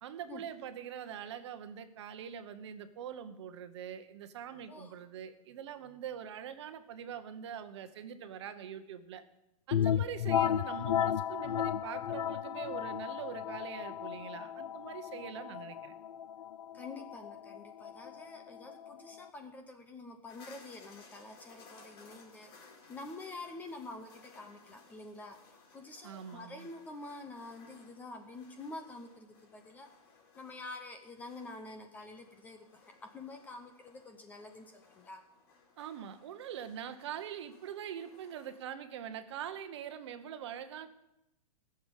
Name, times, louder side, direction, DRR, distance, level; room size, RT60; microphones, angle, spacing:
voice 1, 0.0-9.2 9.7-15.9 26.0-26.7 35.8-40.9, right 9 dB, 45° right, 10 dB, 1.1 m, -43 dB
sound 1, 9.7-19.3, left 10 dB, 80° left, 0.5 m, -34 dB
voice 2, 16.7-22.5 22.9-25.4 25.7-29.9 30.4-32.7 33.1-35.2, left 2 dB, 10° left, 6 dB, 0.7 m, -47 dB
sound 2, 20.3-38.6, left 4 dB, 40° left, 3.7 m, -60 dB
15.5 x 7.1 x 8.2 m, 0.88 s
hypercardioid pair, 170°, 19 cm